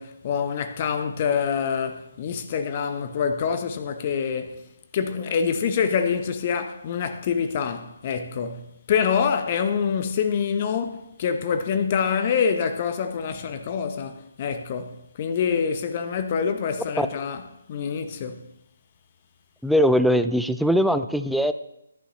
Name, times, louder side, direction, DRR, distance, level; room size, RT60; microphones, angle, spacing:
voice 1, 0.0-4.7 4.9-17.4 17.7-18.5, left 6 dB, 35° left, 0.9 m, -26 dB
voice 2, 19.6-21.5, equal, ahead, 0.4 m, -20 dB
13.5 x 11.0 x 3.0 m
figure-of-eight pair, 145°, 0 cm